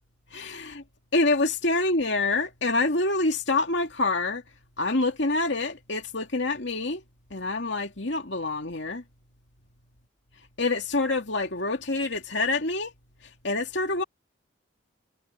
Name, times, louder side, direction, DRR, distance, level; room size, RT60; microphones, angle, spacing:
voice 1, 0.3-0.8 1.1-4.4 4.8-7.0 7.3-9.0 10.6-12.9 13.4-14.0, left 2 dB, 65° left, 2.6 m, -26 dB
head